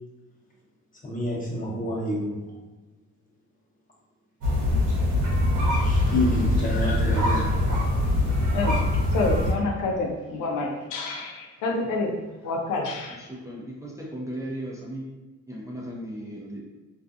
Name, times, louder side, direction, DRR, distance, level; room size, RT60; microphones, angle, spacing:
voice 1, 1.0-2.4 5.8-7.5, left 1 dB, 25° left, -5 dB, 1.0 m, -28 dB
sound 1, 4.4-9.5, left 1 dB, 75° right, 0.9 m, -23 dB
voice 2, 8.5-8.8 9.1-12.2 12.4-13.2, left 2 dB, 85° left, 0 dB, 0.6 m, -28 dB
voice 3, 13.1-15.1 15.5-16.6, right 1 dB, 10° right, -4 dB, 0.5 m, -36 dB
2.6 x 2.2 x 2.5 m, 1.2 s
cardioid pair, 90°, 30 cm